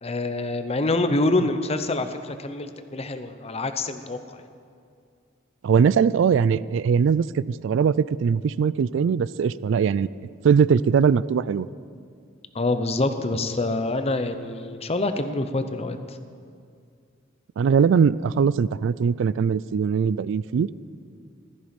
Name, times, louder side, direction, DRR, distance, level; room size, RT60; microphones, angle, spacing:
voice 1, 0.0-4.2 12.5-16.2, left 2 dB, 30° left, 9 dB, 0.8 m, -26 dB
voice 2, 5.6-10.1 10.4-11.7 17.6-20.7, right 6 dB, 65° right, 18 dB, 0.3 m, -21 dB
15.5 x 13.5 x 5.2 m, 2.3 s
head